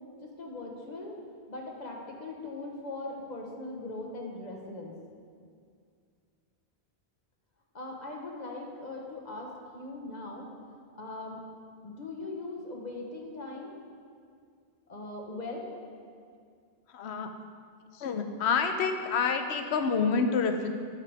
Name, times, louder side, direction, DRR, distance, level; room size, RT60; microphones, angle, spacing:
voice 1, 0.2-1.2 1.5-4.9 7.7-10.5 10.9-11.5 11.8-13.8 14.9-15.7, left 2 dB, 45° left, -1 dB, 1.2 m, -40 dB
voice 2, 16.9-17.3 17.9-20.7, left 5 dB, 80° left, 6 dB, 1.0 m, -28 dB
9.2 x 6.8 x 4.7 m, 2.2 s
omnidirectional pair, 1.1 m